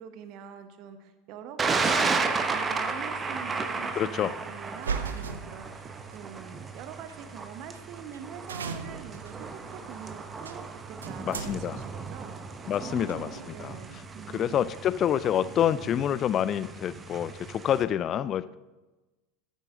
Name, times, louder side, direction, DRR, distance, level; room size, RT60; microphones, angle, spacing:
voice 1, 0.0-14.7, right 8 dB, 45° right, 9 dB, 1.1 m, -44 dB
Thunder, 1.6-17.8, right 4 dB, 20° right, 1.0 m, -34 dB
voice 2, 4.0-4.3 11.3-11.8 12.7-13.3 13.6-13.8 14.3-18.6, left 10 dB, 35° left, 17 dB, 0.4 m, -27 dB
sound 1, 4.7-6.2 7.1-7.2 7.7-7.8 8.1-8.2 8.5-14.8, right 5 dB, 75° right, 0.7 m, -39 dB
14.0 x 9.2 x 3.9 m, 1.1 s
figure-of-eight pair, 80°, 0 cm